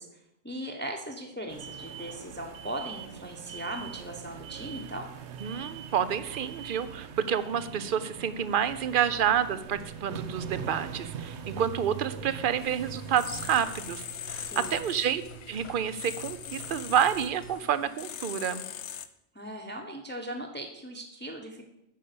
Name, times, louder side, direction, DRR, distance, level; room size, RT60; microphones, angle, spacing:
voice 1, 0.0-5.1 14.4-14.8 19.3-21.6, right 1 dB, 10° left, 2 dB, 0.9 m, -39 dB
sound 1, 1.5-13.7, right 7 dB, 85° right, 1.0 m, -42 dB
voice 2, 5.4-15.2 15.5-18.6, right 8 dB, 55° right, 14 dB, 0.7 m, -29 dB
sound 2, 9.6-17.5, right 5 dB, 65° left, 1.7 m, -48 dB
sound 3, 12.6-19.1, left 9 dB, 90° left, 1.0 m, -41 dB
9.2 x 5.4 x 6.8 m, 0.84 s
omnidirectional pair, 1.1 m